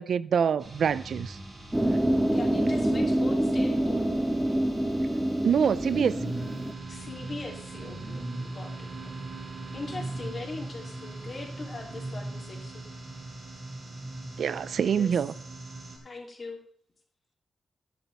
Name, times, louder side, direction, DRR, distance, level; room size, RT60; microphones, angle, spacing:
voice 1, 0.0-1.4 5.4-6.4 14.4-15.3, right 7 dB, 75° right, 0.4 m, -26 dB
sound 1, 0.6-16.0, right 2 dB, 35° right, 3.6 m, -40 dB
sound 2, 1.7-6.7, right 1 dB, 10° right, 1.0 m, -26 dB
voice 2, 2.2-4.0 6.9-9.1 9.7-12.9 14.6-15.2 16.0-16.6, left 3 dB, 40° left, 2.9 m, -41 dB
12.5 x 10.5 x 3.4 m
wide cardioid pair, 150°, 0 cm